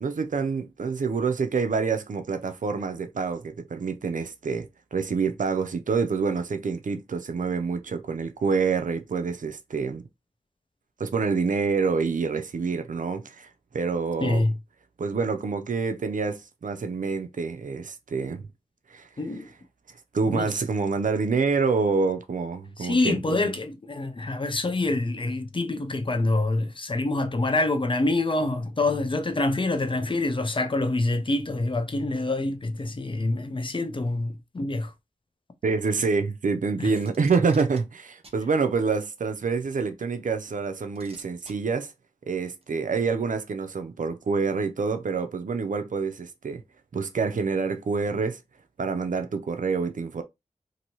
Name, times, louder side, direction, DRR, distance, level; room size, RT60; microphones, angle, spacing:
voice 1, 0.0-10.0 11.0-14.4 15.0-18.5 18.9-19.1 20.1-23.5 35.6-41.9 42.3-46.6 46.9-48.4 48.8-50.2, right 5 dB, 70° right, 0.5 m, -27 dB
voice 2, 14.2-14.5 19.2-19.5 20.3-20.5 22.8-34.9 36.8-36.9, left 2 dB, 35° left, 0.6 m, -26 dB
Packing tape duct tape, 36.9-37.8 38.2-38.4 39.7-39.8 41.0-41.5 42.6-42.7, right 2 dB, 45° right, 0.8 m, -48 dB
2.8 x 2.6 x 2.9 m
wide cardioid pair, 55°, 14 cm